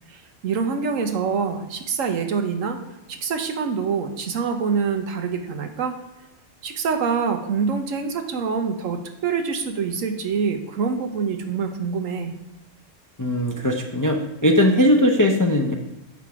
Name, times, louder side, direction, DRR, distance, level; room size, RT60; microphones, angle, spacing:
voice 1, 0.1-2.8 3.1-6.0 6.6-12.3, right 5 dB, 85° right, 6 dB, 1.3 m, -25 dB
voice 2, 13.2-15.7, left 1 dB, 30° left, 3 dB, 0.3 m, -19 dB
7.2 x 5.8 x 4.7 m, 1.0 s
omnidirectional pair, 1.3 m